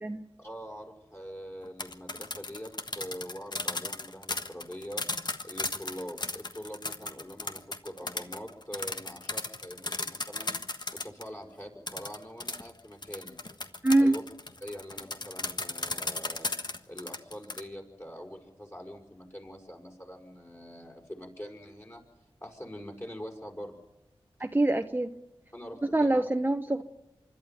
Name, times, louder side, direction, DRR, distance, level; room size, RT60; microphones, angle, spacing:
voice 1, 0.4-5.0 5.4-10.5 10.9-13.4 14.0-14.2 14.6-16.5 16.9-22.0 22.4-23.8 25.5-26.2, equal, 25° left, 1 dB, 6.0 m, -43 dB
sound 1, 1.6-11.3 11.9-17.6, left 2 dB, 45° left, 1.4 m, -35 dB
voice 2, 13.8-14.2 24.4-25.2 25.9-26.8, right 2 dB, 20° right, 6 dB, 1.0 m, -24 dB
25.5 x 12.0 x 9.3 m, 1.0 s
cardioid pair, 45°, 10 cm